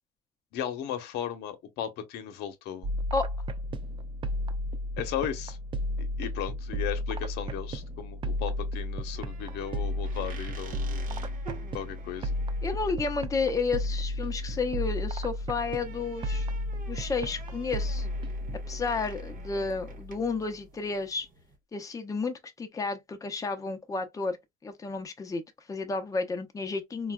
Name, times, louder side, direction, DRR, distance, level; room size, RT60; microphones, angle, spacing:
voice 1, 0.5-2.9 5.0-5.6 6.0-11.0 11.7-12.3, left 10 dB, 85° left, 0.8 m, -36 dB
sound 1, 2.8-20.4, left 1 dB, 30° right, 0.4 m, -33 dB
sound 2, 9.1-21.6, right 5 dB, 55° right, 1.0 m, -50 dB
voice 2, 12.6-16.5 16.9-18.1 18.7-21.3 21.7-24.4 24.6-25.4 25.7-27.1, left 4 dB, 20° left, 0.6 m, -31 dB
3.8 x 2.3 x 2.2 m
cardioid pair, 110°, 17 cm